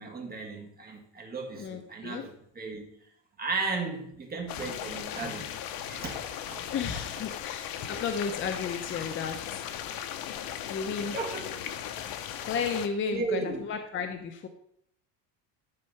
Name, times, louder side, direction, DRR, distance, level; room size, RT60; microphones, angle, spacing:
voice 1, 0.0-2.9 3.4-5.5 5.9-6.2 6.5-6.6 11.1-11.5 13.1-13.6, right 3 dB, 20° right, 1 dB, 1.9 m, -35 dB
voice 2, 1.5-2.2 6.7-9.6 10.7-11.1 12.4-14.5, left 6 dB, 25° left, 6 dB, 0.7 m, -33 dB
sound 1, 4.5-12.9, left 10 dB, 50° left, 0.9 m, -37 dB
11.0 x 4.5 x 5.8 m, 0.72 s
cardioid pair, 155°, 45 cm